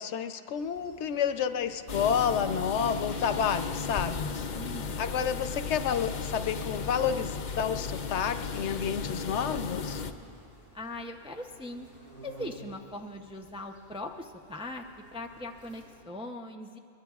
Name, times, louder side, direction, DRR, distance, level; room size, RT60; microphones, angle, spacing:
voice 1, 0.0-4.3 5.0-10.0, left 7 dB, 90° left, 9 dB, 0.9 m, -30 dB
sound 1, 0.5-16.0, right 1 dB, 85° right, 5.3 m, -55 dB
sound 2, 1.9-10.1, left 5 dB, 50° left, 0.6 m, -35 dB
voice 2, 4.5-5.0 10.7-11.9 12.2-14.8 15.1-16.8, left 1 dB, 10° right, 3 dB, 0.3 m, -40 dB
22.5 x 21.0 x 2.4 m, 2.4 s
omnidirectional pair, 1.1 m